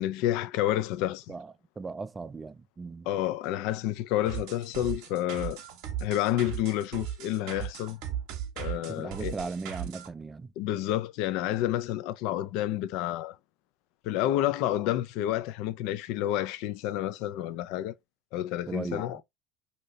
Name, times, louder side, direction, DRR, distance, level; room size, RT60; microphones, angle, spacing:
voice 1, 0.0-1.2 3.1-5.6 6.0-8.0 8.6-9.4 10.6-13.4 14.0-18.0 18.3-19.2, left 13 dB, 70° left, 0.4 m, -29 dB
voice 2, 1.3-3.1 8.8-10.5 18.7-19.2, right 4 dB, 25° right, 0.3 m, -38 dB
sound 1, 4.2-10.1, right 10 dB, 70° right, 0.8 m, -37 dB
2.7 x 2.7 x 3.1 m
hypercardioid pair, 80°, 0 cm